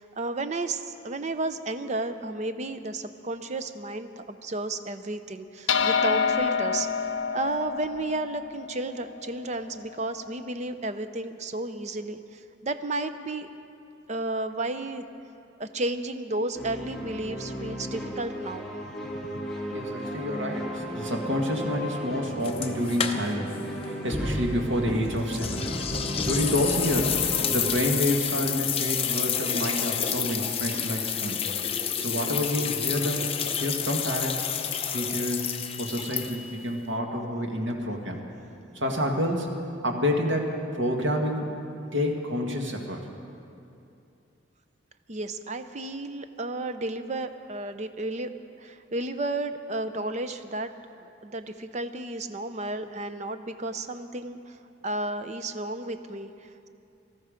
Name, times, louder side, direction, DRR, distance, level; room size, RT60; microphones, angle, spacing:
voice 1, 0.0-6.9 7.3-13.5 14.1-15.1 15.6-18.7 19.3-19.5 45.1-48.3 48.6-50.7 51.0-54.6 54.8-56.7, right 2 dB, 35° right, 10 dB, 0.6 m, -32 dB
sound 1, 5.7-10.3, left 6 dB, 75° left, 0.6 m, -28 dB
sound 2, 16.5-27.7, equal, ahead, 1.4 m, -34 dB
voice 2, 19.7-25.6 26.2-27.2 27.5-31.4 32.0-34.5 34.9-35.5 35.8-38.2 38.7-39.5 39.8-41.5 41.9-43.1, left 1 dB, 80° right, 1 dB, 1.8 m, -28 dB
sound 3, 22.4-23.6 23.8-23.9 25.3-36.6, left 8 dB, 30° left, 0.7 m, -29 dB
18.0 x 13.0 x 5.1 m, 2.6 s
head